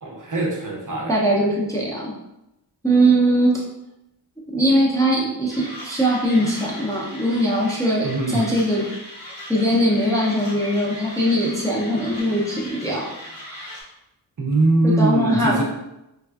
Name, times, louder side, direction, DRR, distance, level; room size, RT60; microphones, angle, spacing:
voice 1, 0.0-1.2 8.0-8.4 14.4-15.6, right 2 dB, 45° right, -1 dB, 0.6 m, -21 dB
voice 2, 1.1-2.1 2.8-3.6 4.5-8.9 9.5-13.1 14.8-15.6, right 1 dB, 10° left, -4 dB, 0.4 m, -20 dB
Mechanisms, 5.5-13.8, left 1 dB, 85° left, 1.0 m, -38 dB
3.4 x 2.4 x 2.3 m, 0.91 s
wide cardioid pair, 95°, 44 cm